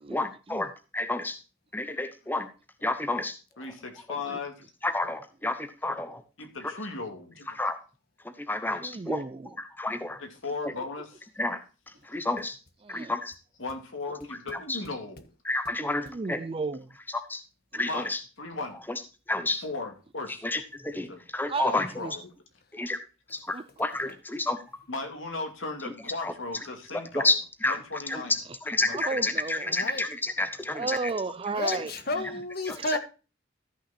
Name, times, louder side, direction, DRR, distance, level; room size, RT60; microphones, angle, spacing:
voice 1, 0.1-1.4 1.7-2.5 2.8-3.4 4.8-6.2 7.6-7.8 8.2-9.2 9.8-10.2 10.6-10.7 11.4-11.6 12.0-12.6 12.9-13.3 14.7-14.8 15.4-16.4 17.3-17.4 17.7-18.2 18.9-19.0 19.3-19.6 20.4-21.9 22.7-23.0 23.3-24.6 26.2-26.3 26.9-27.4 27.6-27.7 28.1-28.2 28.6-31.0 31.7-31.8 32.7-33.0, left 2 dB, 10° left, 0.8 m, -30 dB
voice 2, 3.6-4.5 6.4-7.6 10.2-11.2 13.6-15.3 17.8-18.1 18.4-18.8 19.6-20.4 21.1-21.2 21.6-22.3 24.9-27.4 27.7-28.3 28.7-29.3, left 3 dB, 90° left, 2.5 m, -37 dB
voice 3, 8.8-9.5 12.8-13.1 16.0-16.9 17.7-17.9 21.5-22.1 23.5-23.7 28.9-29.7 30.7-31.9 32.2-32.3 32.7-33.0, right 4 dB, 30° right, 0.4 m, -34 dB
voice 4, 29.7-30.0 31.5-33.0, left 2 dB, 55° left, 1.5 m, -31 dB
13.5 x 5.9 x 4.2 m
head